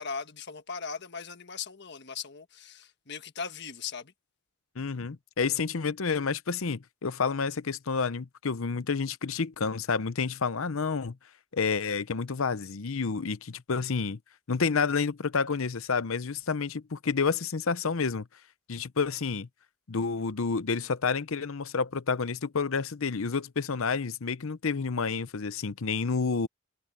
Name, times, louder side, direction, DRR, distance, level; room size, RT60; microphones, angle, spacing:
voice 1, 0.0-4.1, left 5 dB, 50° left, 1.4 m, -39 dB
voice 2, 4.8-11.2 11.5-14.2 14.5-18.3 18.7-19.5 19.9-26.5, left 5 dB, 65° left, 0.7 m, -29 dB
head